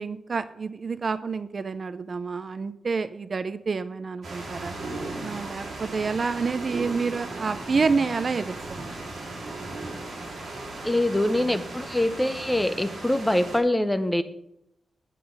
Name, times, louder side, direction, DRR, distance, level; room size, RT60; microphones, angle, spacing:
voice 1, 0.0-4.7 5.2-8.9, right 4 dB, 40° right, 13 dB, 0.4 m, -28 dB
sound 1, 4.2-13.6, right 2 dB, 60° right, 3.9 m, -37 dB
voice 2, 10.8-14.2, left 1 dB, 10° left, 10 dB, 0.6 m, -24 dB
9.9 x 7.7 x 5.2 m, 0.79 s
wide cardioid pair, 160°, 0 cm